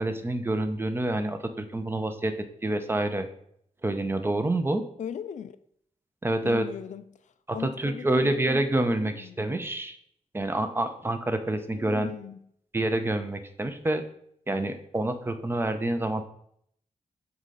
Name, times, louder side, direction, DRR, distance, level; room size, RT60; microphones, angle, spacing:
voice 1, 0.0-2.3 2.6-3.3 3.8-4.8 6.2-6.7 7.5-10.0 10.3-12.1 12.7-14.0 14.5-16.2, right 1 dB, 15° right, 0.5 m, -27 dB
voice 2, 5.0-5.6 6.4-8.3 8.7-9.5 11.7-12.4, left 8 dB, 70° left, 0.4 m, -39 dB
6.5 x 4.7 x 3.9 m
wide cardioid pair, 175°, 13 cm